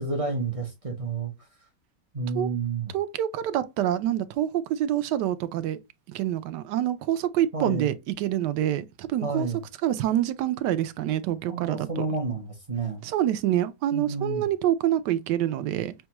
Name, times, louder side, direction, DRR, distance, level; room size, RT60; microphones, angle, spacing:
voice 1, 0.0-1.3 2.1-2.9 7.5-7.9 9.2-9.6 11.5-13.0 13.9-14.5, right 3 dB, 55° right, 0.3 m, -30 dB
voice 2, 2.9-5.8 6.1-9.5 9.8-12.1 13.0-15.9, right 12 dB, 80° right, 1.2 m, -26 dB
6.1 x 2.3 x 2.9 m
omnidirectional pair, 1.8 m